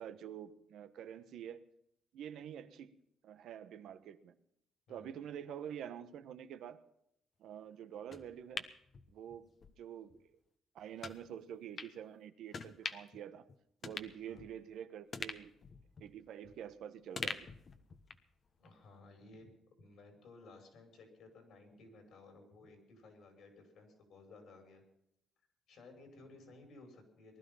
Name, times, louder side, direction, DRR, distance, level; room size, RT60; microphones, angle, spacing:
voice 1, 0.0-1.6 2.1-3.0 3.2-4.4 4.9-6.8 7.4-8.7 9.1-10.2 10.7-13.5 13.8-15.5 16.0-17.5, right 9 dB, 80° right, 10 dB, 1.2 m, -47 dB
sound 1, 8.1-9.7 10.1-10.2 11.0-11.2 11.8-11.9 12.5-13.2 13.5-13.6 13.8-14.7 15.1-16.7 17.2-18.3 18.7-18.8, left 5 dB, 45° left, 1.3 m, -44 dB
voice 2, 18.6-19.5 19.8-24.8 25.7-27.4, left 3 dB, 70° left, 5 dB, 6.0 m, -57 dB
20.0 x 12.0 x 5.6 m, 0.77 s
cardioid pair, 90°, 0 cm